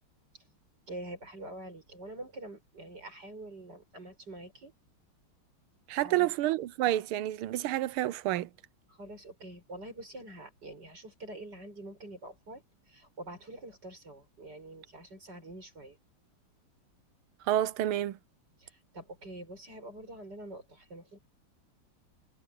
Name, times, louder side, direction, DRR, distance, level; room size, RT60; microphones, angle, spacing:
voice 1, 0.9-4.7 6.0-6.3 8.9-16.0 18.6-21.2, right 1 dB, 50° right, 7.2 m, -46 dB
voice 2, 5.9-8.5 17.5-18.2, right 14 dB, 90° right, 1.6 m, -29 dB
omnidirectional pair, 2.3 m